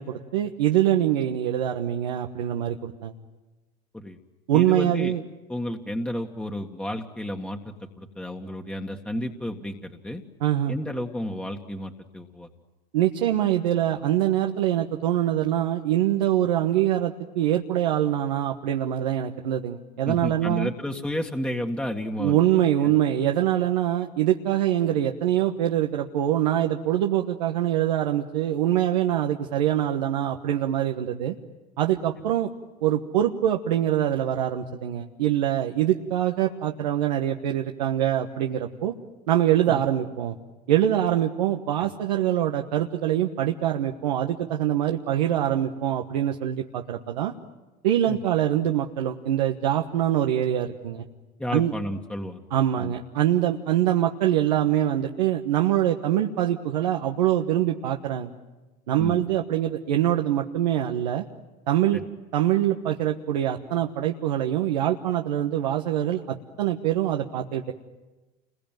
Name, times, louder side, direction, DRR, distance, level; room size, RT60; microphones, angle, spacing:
voice 1, 0.0-3.1 4.5-5.2 10.4-10.8 12.9-20.7 22.2-31.3 31.8-32.5 32.8-38.9 39.3-40.3 40.7-47.3 47.8-51.0 51.5-51.7 52.5-58.3 58.9-61.2 61.7-62.0 62.3-67.7, right 11 dB, 85° right, 3 dB, 1.3 m, -24 dB
voice 2, 4.5-5.2 5.5-10.2 10.7-12.5 20.1-22.4 22.8-22.9 39.7-39.8 48.1-48.2 51.4-52.5 52.8-52.9 59.0-59.2 61.9-62.0, left 1 dB, 5° left, 3 dB, 1.9 m, -32 dB
29.0 x 22.0 x 9.3 m, 1.2 s
hypercardioid pair, 85°, 21 cm